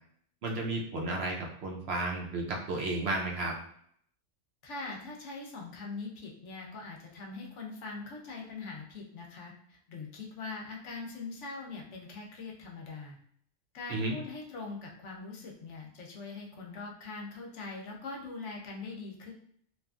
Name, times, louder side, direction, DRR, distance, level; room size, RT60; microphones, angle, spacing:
voice 1, 0.4-3.5 13.9-14.2, right 2 dB, 65° right, -1 dB, 0.8 m, -33 dB
voice 2, 4.6-13.2 13.7-19.3, left 3 dB, 75° left, 0 dB, 0.9 m, -42 dB
2.9 x 2.4 x 2.2 m, 0.65 s
omnidirectional pair, 1.2 m